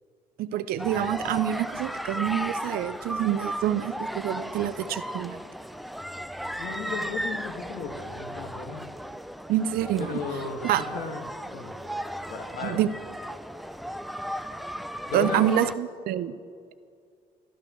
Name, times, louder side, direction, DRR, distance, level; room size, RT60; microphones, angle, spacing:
voice 1, 0.4-5.4 9.5-10.2 10.6-10.8 12.6-12.9 15.1-16.4, right 11 dB, 75° right, 13 dB, 0.6 m, -27 dB
sound 1, 0.8-15.7, equal, ahead, 0.3 m, -35 dB
voice 2, 6.6-8.8 10.0-10.6 10.9-11.2 11.5-11.7 12.3-12.8 15.1-15.5, left 5 dB, 80° left, 3 dB, 1.8 m, -35 dB
22.0 x 13.0 x 3.1 m, 2.3 s
cardioid pair, 125°, 15 cm